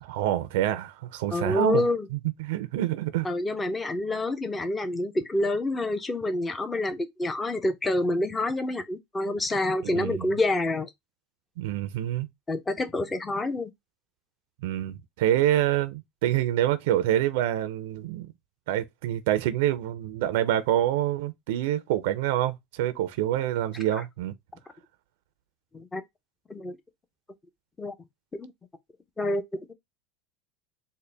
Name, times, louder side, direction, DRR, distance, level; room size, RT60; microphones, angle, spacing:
voice 1, 0.0-1.8 2.1-3.3 9.8-10.3 11.6-12.3 14.6-18.3 18.7-24.3, right 12 dB, 80° right, 0.4 m, -26 dB
voice 2, 1.3-2.1 3.2-10.9 12.5-13.7 25.7-26.0 26.5-26.8 27.8-27.9 28.3-28.5 29.2-29.4, left 2 dB, 15° left, 0.6 m, -27 dB
3.8 x 2.1 x 3.3 m
supercardioid pair, 115°, 0 cm